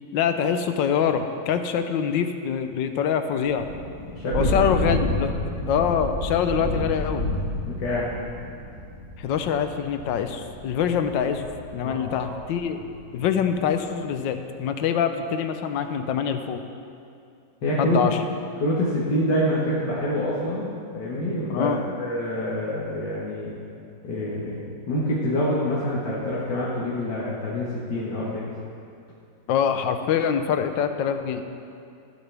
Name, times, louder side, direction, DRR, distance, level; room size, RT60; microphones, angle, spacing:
voice 1, 0.1-3.7 4.3-5.4 5.7-7.3 9.2-12.8 13.1-16.6 17.8-18.2 21.5-21.8 29.5-31.4, left 7 dB, 90° left, 8 dB, 1.4 m, -24 dB
Thunder / Rain, 3.5-12.9, left 1 dB, 60° right, 2.9 m, -30 dB
voice 2, 4.1-4.6 7.6-8.1 11.8-12.3 17.6-18.0 18.6-21.7 22.0-23.5 24.0-28.4, left 1 dB, 70° left, -7 dB, 2.1 m, -26 dB
15.0 x 11.5 x 3.4 m, 2.5 s
omnidirectional pair, 1.9 m